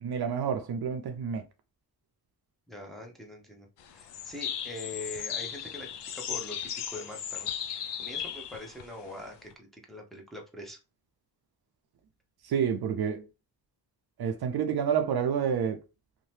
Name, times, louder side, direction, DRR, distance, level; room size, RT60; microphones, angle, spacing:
voice 1, 0.0-1.5 12.4-13.2 14.2-15.8, right 7 dB, 65° right, 0.5 m, -29 dB
voice 2, 2.7-7.5 8.0-10.8, left 1 dB, ahead, 0.8 m, -43 dB
sound 1, 3.8-9.5, left 9 dB, 80° left, 0.5 m, -36 dB
2.7 x 2.2 x 3.2 m
cardioid pair, 90°, 41 cm